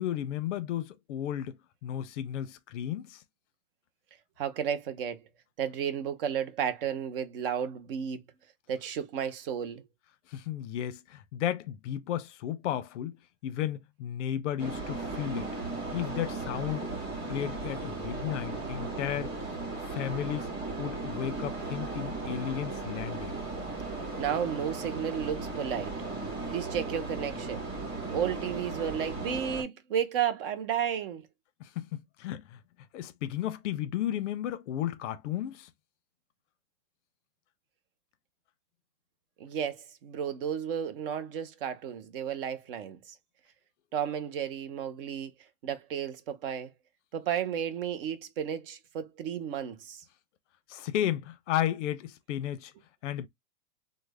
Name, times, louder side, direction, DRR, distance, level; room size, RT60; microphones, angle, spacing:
voice 1, 0.0-1.6 1.8-3.2 10.3-13.2 13.4-15.5 15.9-16.9 17.3-19.3 19.8-20.5 20.8-23.3 31.6-32.6 32.9-35.7 50.7-52.7 53.0-53.3, left 11 dB, 50° left, 0.6 m, -33 dB
voice 2, 4.4-5.2 5.6-8.2 8.7-9.8 24.2-26.0 26.5-27.7 28.1-31.3 39.4-43.2 43.9-45.3 45.6-46.7 47.1-50.0, right 8 dB, 35° right, 0.5 m, -33 dB
sound 1, 14.6-29.6, right 3 dB, 10° right, 1.3 m, -36 dB
3.1 x 2.1 x 3.4 m
hypercardioid pair, 155°, 48 cm